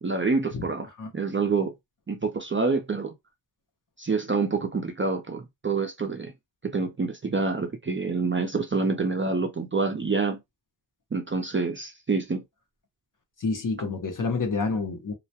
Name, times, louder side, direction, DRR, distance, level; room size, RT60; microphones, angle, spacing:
voice 1, 0.0-1.7 2.1-3.1 4.0-6.3 6.6-10.4 11.1-12.4, right 4 dB, 30° right, 0.4 m, -27 dB
voice 2, 13.4-15.1, left 4 dB, 45° left, 0.7 m, -28 dB
2.2 x 2.1 x 2.7 m
wide cardioid pair, 95°, 44 cm